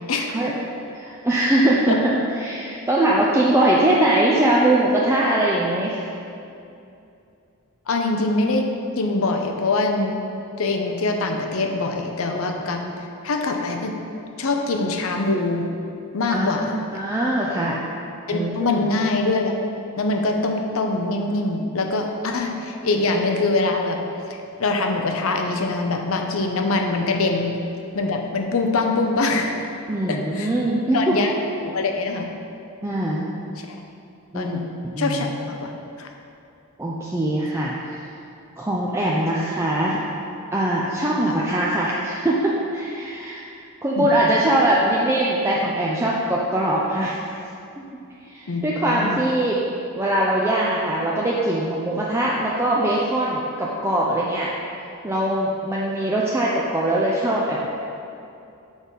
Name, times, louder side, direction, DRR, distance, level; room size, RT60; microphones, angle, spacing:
voice 1, 0.1-0.5 1.9-2.0 7.9-8.7 9.0-10.1 10.6-12.8 13.2-14.1 14.4-15.7 16.1-16.8 18.3-19.5 20.0-24.0 24.6-27.5 27.9-29.5 30.1-30.5 30.9-32.3 33.6-33.8 34.3-34.6 35.0-35.7 36.0-36.1 41.2-41.3 44.0-44.4 48.5-49.2, left 3 dB, 65° left, 3 dB, 0.6 m, -23 dB
voice 2, 0.9-6.0 12.3-12.4 12.8-12.9 16.3-17.8 18.3-18.9 29.9-31.3 32.8-33.3 34.3-34.6 34.9-35.3 36.8-38.0 38.6-40.0 40.5-43.4 43.8-47.1 48.3-49.6 50.0-54.5 55.0-57.7, right 1 dB, 10° right, -5 dB, 0.4 m, -22 dB
6.1 x 3.8 x 5.5 m, 2.6 s
head